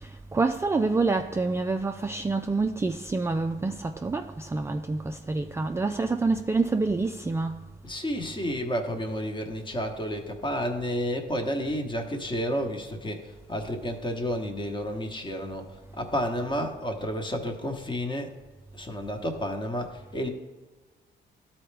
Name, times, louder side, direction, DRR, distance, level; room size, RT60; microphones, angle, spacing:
voice 1, 0.0-7.5, right 3 dB, 15° right, 0.3 m, -27 dB
voice 2, 7.8-18.3 18.7-20.3, equal, 25° left, 1.1 m, -31 dB
12.5 x 4.3 x 3.3 m
cardioid pair, 90°, 20 cm